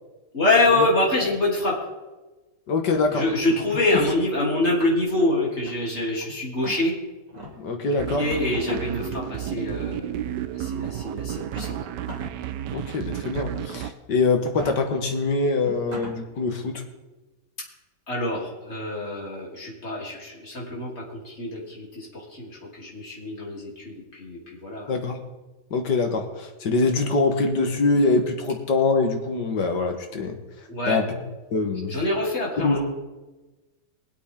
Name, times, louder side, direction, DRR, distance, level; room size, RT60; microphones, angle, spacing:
voice 1, 0.3-1.8 3.1-7.0 7.9-11.8 18.1-24.9 30.7-31.0 31.9-32.8, left 2 dB, 40° left, -4 dB, 3.6 m, -25 dB
voice 2, 2.7-3.2 7.6-8.2 12.7-16.8 24.9-25.2 25.7-30.4 30.9-31.2 31.5-31.9 32.6-32.8, left 3 dB, 80° left, 5 dB, 2.1 m, -24 dB
sound 1, 3.2-4.1 4.6-5.2 5.6-6.2 6.6-6.8 7.3-7.5 8.5-9.1 10.2-10.3 11.4-12.3 12.7-12.8 13.5-13.9 14.4-14.7 15.3-15.4 15.6-16.1, right 1 dB, 25° right, 2.7 m, -38 dB
sound 2, 8.0-13.9, right 11 dB, 80° right, 1.2 m, -32 dB
23.5 x 8.3 x 3.8 m, 1.1 s
omnidirectional pair, 1.8 m